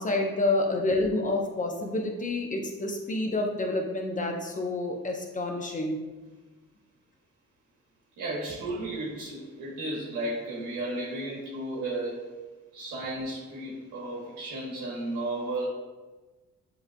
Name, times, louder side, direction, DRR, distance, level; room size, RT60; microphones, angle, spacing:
voice 1, 0.0-6.0, left 2 dB, 25° left, 2 dB, 0.8 m, -28 dB
voice 2, 8.2-12.3 12.7-15.7, right 2 dB, 90° right, -5 dB, 1.1 m, -34 dB
7.1 x 3.2 x 2.2 m, 1.2 s
cardioid pair, 90°, 30 cm